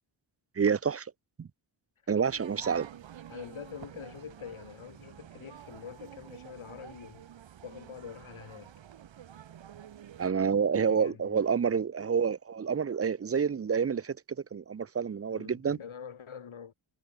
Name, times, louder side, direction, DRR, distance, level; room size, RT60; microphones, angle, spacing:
voice 1, 0.6-1.1 1.4-1.5 2.1-2.9 10.2-14.2 14.5-15.8, right 6 dB, 30° right, 0.5 m, -28 dB
sound 1, 2.2-10.3, right 10 dB, 65° right, 0.9 m, -49 dB
voice 2, 3.3-7.2 7.6-8.8 10.7-11.5 15.3-16.7, left 7 dB, 75° left, 3.1 m, -45 dB
wide cardioid pair, 110°, 49 cm